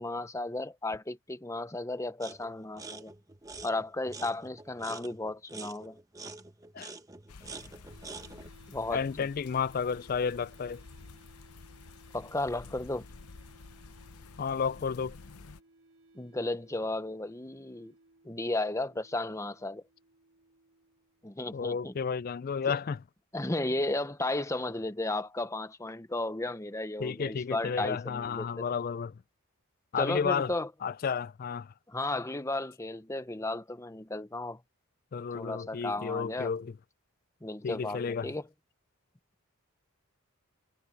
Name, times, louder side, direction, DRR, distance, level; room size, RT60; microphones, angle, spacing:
voice 1, 0.0-3.1 3.6-6.0 8.7-9.3 12.1-13.1 16.1-17.9 18.2-19.8 21.2-21.9 22.7-22.8 23.3-28.7 30.0-30.7 31.9-34.6 35.3-36.5 37.4-38.4, left 2 dB, 15° left, 0.7 m, -34 dB
sound 1, 2.2-2.5 2.8-8.5, right 3 dB, 15° right, 0.9 m, -46 dB
sound 2, 7.3-15.6, left 4 dB, 90° left, 0.8 m, -51 dB
sound 3, 7.9-21.8, right 2 dB, 70° right, 5.0 m, -61 dB
voice 2, 8.9-10.8 14.4-15.2 21.5-23.0 27.0-29.2 29.9-30.5 30.8-31.7 35.1-36.7 37.6-38.3, left 6 dB, 40° left, 0.3 m, -32 dB
head